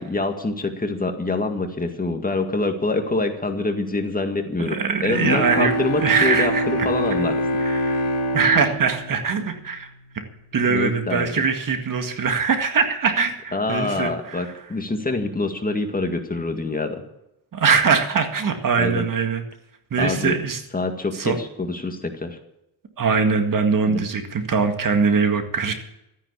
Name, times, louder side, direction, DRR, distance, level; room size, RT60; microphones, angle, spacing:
voice 1, 0.0-7.3 10.7-11.4 13.5-17.0 18.7-19.0 20.0-20.4 20.7-22.4 23.9-24.0, left 2 dB, 20° left, 5 dB, 1.9 m, -25 dB
voice 2, 4.6-6.9 7.6-8.0 8.3-9.9 10.1-10.2 10.5-14.5 17.5-19.4 19.9-20.6 21.1-21.4 23.0-25.7, right 5 dB, 55° right, 6 dB, 1.9 m, -22 dB
Bowed string instrument, 5.1-10.3, equal, 60° left, 3.6 m, -25 dB
13.5 x 9.8 x 8.3 m, 0.85 s
cardioid pair, 115°, 38 cm